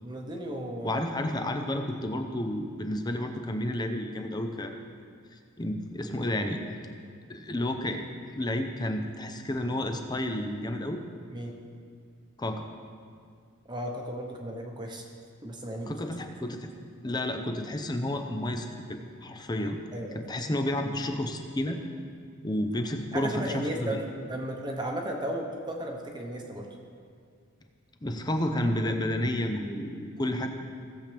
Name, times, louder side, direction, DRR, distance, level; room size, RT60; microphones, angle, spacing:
voice 1, 0.0-1.0 11.3-11.5 13.7-15.0 15.4-15.9 16.4-16.5 19.9-20.2 23.1-26.7, right 1 dB, 20° right, 1 dB, 1.0 m, -35 dB
voice 2, 0.8-4.8 5.6-6.6 7.3-8.1 8.4-11.0 12.4-12.7 15.9-16.7 17.0-19.8 20.1-21.8 22.4-24.0 28.0-30.5, left 1 dB, 20° left, 5 dB, 0.6 m, -31 dB
17.5 x 7.5 x 3.4 m, 2.2 s
head